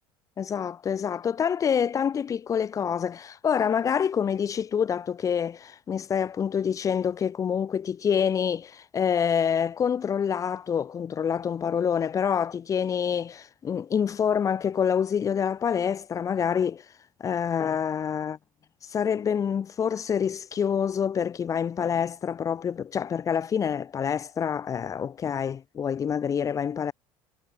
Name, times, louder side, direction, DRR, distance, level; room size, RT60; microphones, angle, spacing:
voice 1, 0.4-16.9 17.2-18.4 18.8-26.9, left 7 dB, 30° left, 4.3 m, -27 dB
cardioid pair, 145°, 12 cm